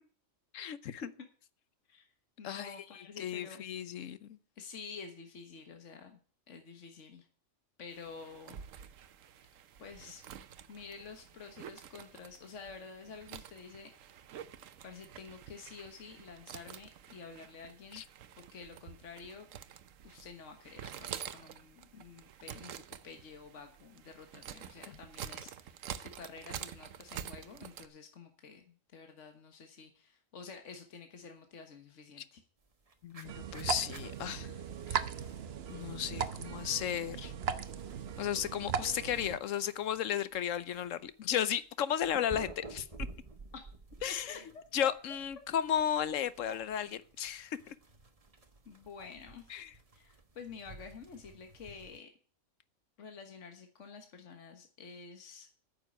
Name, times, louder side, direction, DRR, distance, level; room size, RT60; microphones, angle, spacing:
voice 1, 0.5-1.0 2.4-4.4 17.9-18.0 24.9-25.0 33.0-34.5 34.9-35.0 35.7-37.3 38.2-42.9 44.0-44.4 44.7-46.9 47.2-47.7 49.5-49.7, left 9 dB, 90° left, 1.2 m, -34 dB
voice 2, 2.4-3.6 4.6-6.2 6.5-7.3 7.8-8.6 9.8-10.2 10.7-14.2 14.8-18.0 18.4-19.5 20.0-32.4 43.5-43.6 44.1-44.9 46.4-46.6 48.7-49.5 49.9-52.1 53.0-55.6, left 5 dB, 70° left, 1.7 m, -50 dB
sound 1, 7.9-27.9, right 9 dB, 85° right, 1.1 m, -48 dB
sound 2, 32.6-52.0, right 3 dB, 30° right, 1.2 m, -53 dB
sound 3, 33.3-39.4, right 7 dB, 55° right, 1.0 m, -38 dB
9.3 x 6.8 x 8.7 m
omnidirectional pair, 1.3 m